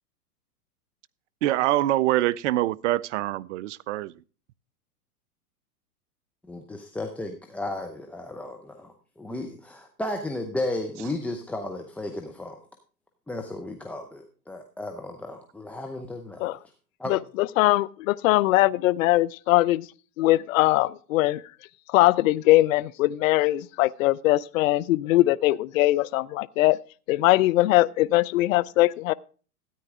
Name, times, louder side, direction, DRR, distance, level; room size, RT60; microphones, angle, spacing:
voice 1, 1.4-4.1, right 15 dB, 50° right, 0.5 m, -24 dB
voice 2, 6.5-12.6 13.3-16.6 17.0-17.2, left 2 dB, 5° left, 0.6 m, -34 dB
voice 3, 17.1-19.9 20.2-21.4 21.9-26.8 27.1-29.1, left 17 dB, 60° left, 0.5 m, -21 dB
13.5 x 9.2 x 3.6 m
hypercardioid pair, 120°, 47 cm